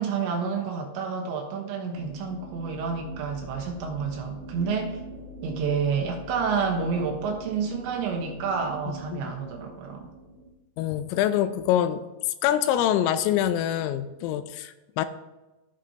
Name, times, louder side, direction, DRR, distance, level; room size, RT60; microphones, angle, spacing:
voice 1, 0.0-5.0 5.4-10.1, right 5 dB, 70° right, 2 dB, 3.1 m, -29 dB
sound 1, 1.9-10.5, equal, 55° right, 2.5 m, -43 dB
voice 2, 10.8-12.0 12.4-15.1, left 11 dB, 85° left, 11 dB, 3.2 m, -25 dB
16.5 x 6.0 x 2.9 m, 1.1 s
omnidirectional pair, 5.9 m